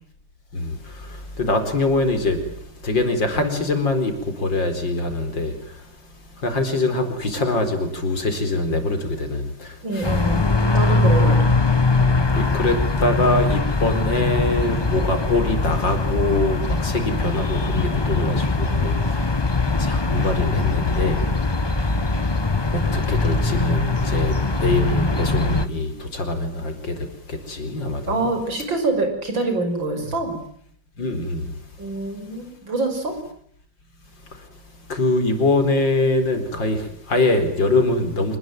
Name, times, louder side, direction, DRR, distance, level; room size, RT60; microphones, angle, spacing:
voice 1, 0.5-10.2 11.9-28.3 31.0-31.6 34.2-34.6 34.9-38.4, left 2 dB, 75° left, 5.1 m, -24 dB
voice 2, 9.8-10.4 10.7-11.4 28.1-30.4 31.8-33.2, right 2 dB, 80° right, 6.6 m, -25 dB
sound 1, 10.0-25.7, left 3 dB, 20° left, 0.8 m, -21 dB
27.0 x 20.5 x 9.3 m
omnidirectional pair, 2.0 m